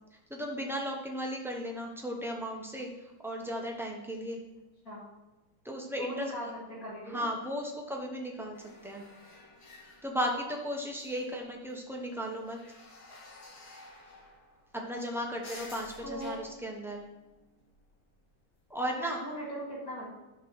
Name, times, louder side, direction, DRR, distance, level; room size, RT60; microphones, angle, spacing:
voice 1, 0.3-4.4 5.6-6.3 7.1-8.6 8.8-9.0 10.0-12.6 14.7-17.0 18.7-19.2, equal, 5° right, 0 dB, 0.3 m, -35 dB
voice 2, 6.0-7.3 16.0-16.4 19.0-20.1, equal, 45° left, -6 dB, 2.4 m, -39 dB
sound 1, 8.5-10.7 11.0-11.7 12.1-18.1 18.7-18.8, left 2 dB, 90° left, 2.5 m, -53 dB
11.0 x 3.8 x 6.2 m, 1.1 s
omnidirectional pair, 2.1 m